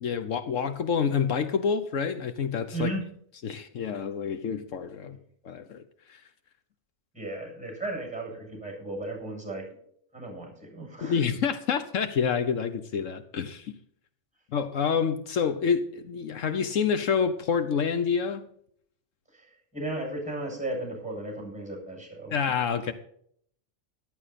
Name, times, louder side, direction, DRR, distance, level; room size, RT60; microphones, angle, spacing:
voice 1, 0.0-2.9 3.4-5.2 5.4-5.8 6.1-6.2 11.0-13.7 14.5-18.5 22.3-22.9, left 6 dB, 75° left, 1.2 m, -28 dB
voice 2, 2.7-3.0 7.1-9.7 10.1-11.2 19.3-22.4, right 2 dB, 5° right, 7.6 m, -35 dB
14.0 x 12.5 x 4.2 m
omnidirectional pair, 1.3 m